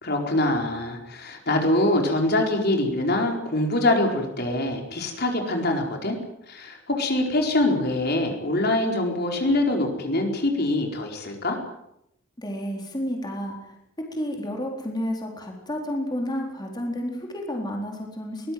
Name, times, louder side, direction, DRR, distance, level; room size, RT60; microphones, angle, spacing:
voice 1, 0.0-6.2 6.5-11.6, left 1 dB, 55° left, 2 dB, 4.6 m, -24 dB
voice 2, 12.4-18.5, equal, 20° left, 0 dB, 4.1 m, -31 dB
22.5 x 20.0 x 7.8 m, 0.79 s
head